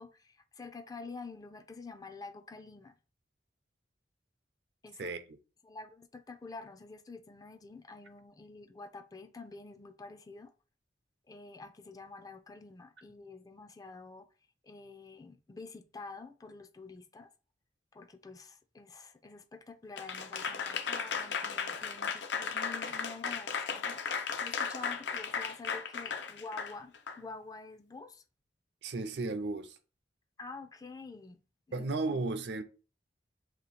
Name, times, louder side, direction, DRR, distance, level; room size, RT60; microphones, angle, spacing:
voice 1, 0.0-3.0 4.8-5.1 5.6-10.5 11.3-14.3 14.6-17.3 17.9-28.2 30.4-31.4 31.7-31.9, left 3 dB, 20° left, 0.3 m, -48 dB
voice 2, 5.0-5.4 28.8-29.8 31.7-32.6, right 3 dB, 70° right, 0.5 m, -34 dB
Applause / Crowd, 20.0-27.2, left 6 dB, 75° left, 0.6 m, -35 dB
3.1 x 2.9 x 4.1 m
head